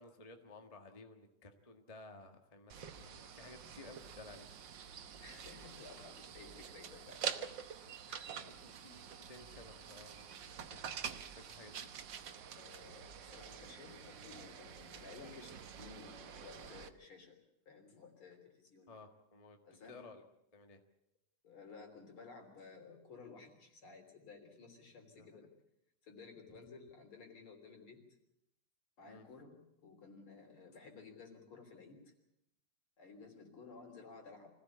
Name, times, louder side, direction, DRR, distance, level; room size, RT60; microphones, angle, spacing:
voice 1, 0.0-4.5 8.4-11.9 18.9-19.6 19.9-20.2 20.5-20.8 25.1-25.5 29.0-29.2, left 3 dB, 25° left, 5 dB, 0.7 m, -56 dB
sound 1, 2.7-16.9, right 8 dB, 70° right, 1.1 m, -47 dB
voice 2, 5.2-7.3 8.1-8.8 12.5-17.4 17.7-18.9 19.6-20.0 21.4-25.5 26.0-28.0 29.0-32.1 33.0-34.5, left 4 dB, 40° left, 4 dB, 4.1 m, -55 dB
25.5 x 16.5 x 8.4 m, 0.80 s
omnidirectional pair, 3.6 m